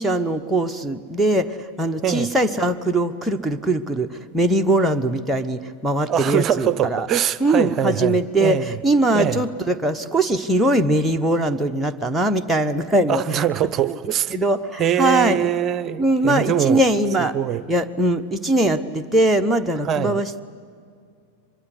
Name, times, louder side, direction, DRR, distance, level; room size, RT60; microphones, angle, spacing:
voice 1, 0.0-7.1 7.4-13.4 13.8-14.0 14.3-15.5 16.0-17.3 17.7-20.4, right 1 dB, 5° right, 1.1 m, -21 dB
voice 2, 6.1-8.8 9.1-9.4 13.1-14.3 14.8-16.8 17.3-17.6 19.8-20.2, right 9 dB, 30° right, 0.8 m, -23 dB
24.0 x 22.0 x 9.9 m
figure-of-eight pair, 90°, 0 cm